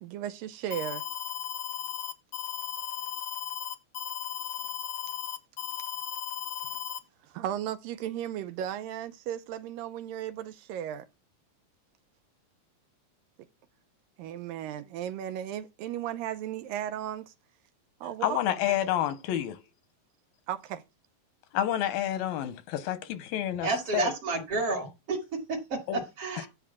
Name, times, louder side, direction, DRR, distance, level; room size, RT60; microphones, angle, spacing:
voice 1, 0.0-1.0 7.2-11.1 14.2-17.3 18.0-18.4 20.5-20.8, right 11 dB, 80° right, 2.4 m, -35 dB
Alarm, 0.7-7.0, left 9 dB, 70° left, 1.1 m, -36 dB
voice 2, 18.2-19.6 21.5-24.1 25.9-26.0, left 11 dB, 85° left, 2.7 m, -29 dB
voice 3, 23.6-26.5, right 3 dB, 45° right, 2.7 m, -31 dB
10.5 x 3.6 x 7.1 m
omnidirectional pair, 4.1 m